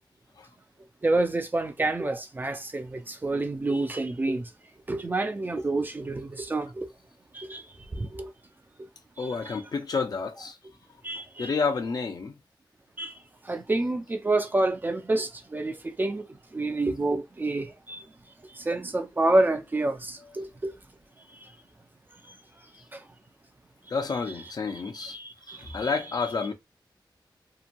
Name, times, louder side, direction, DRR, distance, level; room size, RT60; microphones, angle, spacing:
voice 1, 1.0-4.4 4.9-6.9 7.4-7.6 7.9-8.3 11.0-11.5 13.0-13.1 13.5-16.2 16.5-18.0 18.7-20.7 25.1-25.9, right 2 dB, 25° right, 0.4 m, -28 dB
voice 2, 9.2-10.6 11.4-12.3 23.9-25.2 25.4-26.5, left 4 dB, 50° left, 0.5 m, -30 dB
2.9 x 2.2 x 2.5 m
wide cardioid pair, 145°, 8 cm